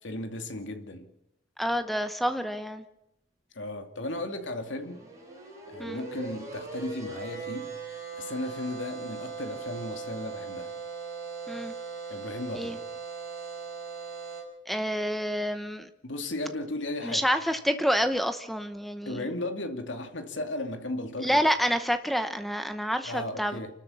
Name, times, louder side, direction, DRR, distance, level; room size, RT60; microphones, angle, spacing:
voice 1, 0.0-1.1 3.5-5.0 5.7-10.7 12.1-12.8 16.0-17.3 19.1-21.4 23.0-23.7, left 1 dB, 80° left, 2.5 m, -35 dB
voice 2, 1.6-2.8 5.8-6.0 11.5-11.7 12.5-12.8 14.7-15.9 17.0-19.3 21.2-23.6, equal, ahead, 0.9 m, -28 dB
sound 1, 4.3-14.4, right 5 dB, 15° right, 6.5 m, -39 dB
29.0 x 13.0 x 7.1 m
head